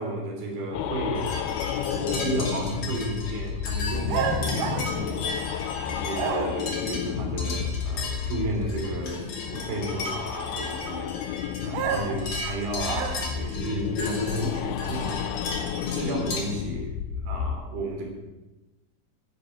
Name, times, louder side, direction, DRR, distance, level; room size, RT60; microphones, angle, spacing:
voice 1, 0.0-1.4 1.9-5.4 5.8-15.2 15.8-18.1, right 1 dB, 55° right, 0 dB, 4.8 m, -33 dB
sound 1, 0.7-17.5, left 8 dB, 90° left, 2.2 m, -31 dB
sound 2, 1.2-16.4, left 2 dB, 40° left, 3.4 m, -36 dB
sound 3, 4.1-5.7 6.1-6.8 11.7-13.5, right 7 dB, 75° right, 3.3 m, -31 dB
10.5 x 9.5 x 9.3 m, 1.1 s
omnidirectional pair, 5.4 m